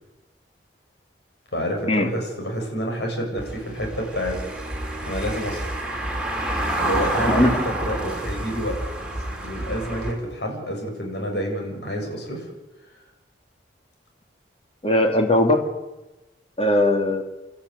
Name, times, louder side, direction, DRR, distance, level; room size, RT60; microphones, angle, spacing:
voice 1, 1.5-4.4 5.0-5.8 6.8-8.8 9.4-12.5, equal, 70° left, 1 dB, 7.2 m, -28 dB
Car passing by / Engine, 3.4-10.1, right 1 dB, 5° right, 4.0 m, -28 dB
voice 2, 7.3-7.6 14.8-15.6 16.6-17.2, left 1 dB, 35° left, 4 dB, 2.7 m, -19 dB
29.0 x 13.5 x 9.7 m, 1.1 s
head